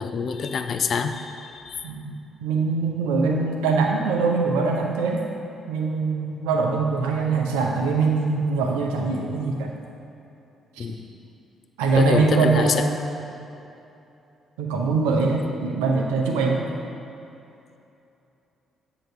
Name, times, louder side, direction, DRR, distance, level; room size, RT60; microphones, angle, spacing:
voice 1, 0.0-1.9 10.8-11.0 11.9-12.9, left 6 dB, 50° left, 8 dB, 0.4 m, -26 dB
voice 2, 2.4-5.3 5.7-9.7 10.8-10.9 11.8-13.0 14.6-16.6, right 4 dB, 70° right, 1 dB, 0.7 m, -23 dB
7.8 x 3.8 x 5.7 m, 2.8 s
figure-of-eight pair, 40°, 0 cm